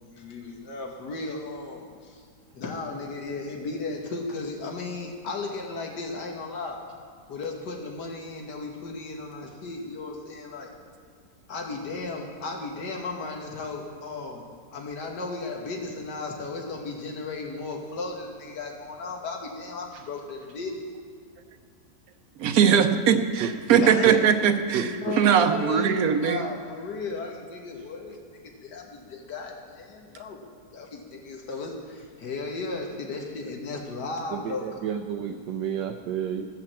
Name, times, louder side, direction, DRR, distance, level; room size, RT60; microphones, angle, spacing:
voice 1, 0.1-2.3 2.5-6.8 7.3-10.7 11.5-14.4 14.7-20.8 23.8-24.3 24.8-30.4 30.7-34.8, left 3 dB, 90° left, 1 dB, 1.8 m, -35 dB
voice 2, 22.4-26.4, right 7 dB, 65° right, 8 dB, 1.1 m, -21 dB
voice 3, 23.4-23.8 24.7-25.1 34.3-36.5, right 8 dB, 90° right, 3 dB, 1.3 m, -31 dB
15.5 x 5.7 x 7.3 m, 2.1 s
omnidirectional pair, 1.8 m